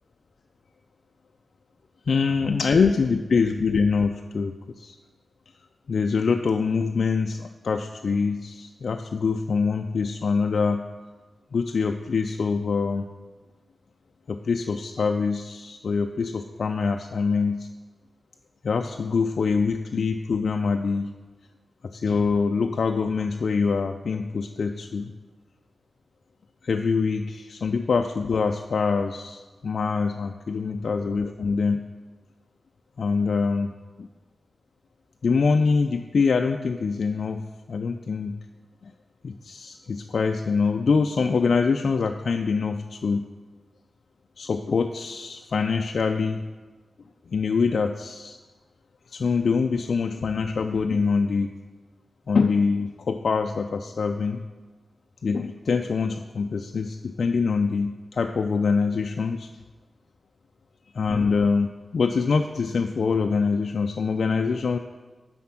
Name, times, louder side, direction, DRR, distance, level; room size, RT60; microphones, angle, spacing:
voice 1, 2.1-5.0 5.9-10.8 11.5-13.1 14.3-17.7 18.6-21.1 21.9-25.1 26.6-31.8 33.0-33.7 35.2-37.4 37.7-38.4 38.8-38.9 39.2-43.2 44.4-46.4 47.3-48.4 49.1-51.5 52.3-54.4 55.2-59.5 60.9-64.8, left 5 dB, 60° left, 5 dB, 0.3 m, -24 dB
9.6 x 4.2 x 5.8 m, 1.3 s
wide cardioid pair, 170°, 0 cm